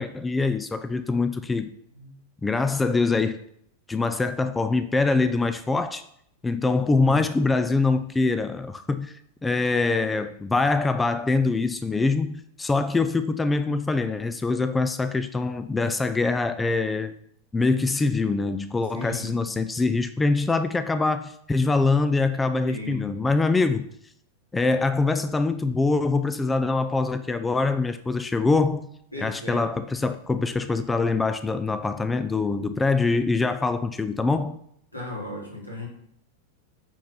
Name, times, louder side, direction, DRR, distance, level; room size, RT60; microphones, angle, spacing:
voice 1, 0.0-1.7 2.4-3.4 3.9-6.0 6.4-9.1 9.4-17.1 17.5-23.9 24.5-28.9 29.2-34.6, left 3 dB, 10° left, 11 dB, 0.4 m, -24 dB
voice 2, 18.9-19.7 22.7-23.0 29.1-29.7 34.9-35.9, left 2 dB, 85° left, -3 dB, 3.2 m, -36 dB
9.0 x 4.4 x 5.6 m, 0.70 s
figure-of-eight pair, 90°, 0 cm